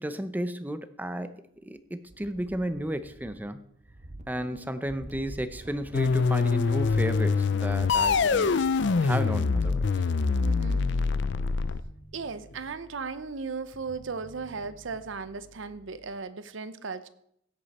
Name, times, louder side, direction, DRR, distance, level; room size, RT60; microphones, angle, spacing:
voice 1, 0.0-3.6 4.3-9.9, right 1 dB, 10° right, 11 dB, 0.7 m, -33 dB
sound 1, 2.1-3.5 3.8-9.1 9.5-9.6, right 1 dB, 35° right, 0.9 m, -45 dB
voice 2, 4.4-4.7 10.4-10.9 12.1-17.1, right 4 dB, 75° right, 13 dB, 0.7 m, -37 dB
sound 2, 5.9-11.8, left 4 dB, 60° left, 0.5 m, -24 dB
Bass guitar, 11.8-16.1, equal, 80° left, 3.0 m, -53 dB
16.5 x 8.2 x 4.2 m, 0.72 s
head